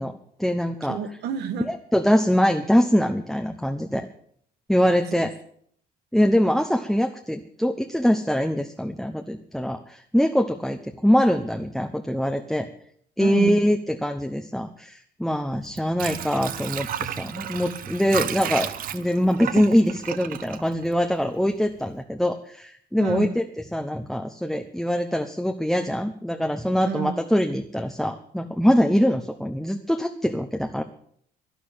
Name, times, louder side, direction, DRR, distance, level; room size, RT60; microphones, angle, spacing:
voice 1, 0.0-1.0 1.7-4.1 4.7-5.3 6.1-12.7 13.2-23.5 23.7-30.8, equal, ahead, 5 dB, 0.9 m, -23 dB
voice 2, 0.9-1.7 13.2-13.6 23.0-23.3 26.8-27.2, right 8 dB, 80° right, 11 dB, 1.7 m, -29 dB
Water / Sink (filling or washing), 15.6-21.5 21.8-21.9, right 10 dB, 60° right, 1.0 m, -32 dB
11.5 x 11.0 x 8.7 m, 0.63 s
cardioid pair, 110°, 17 cm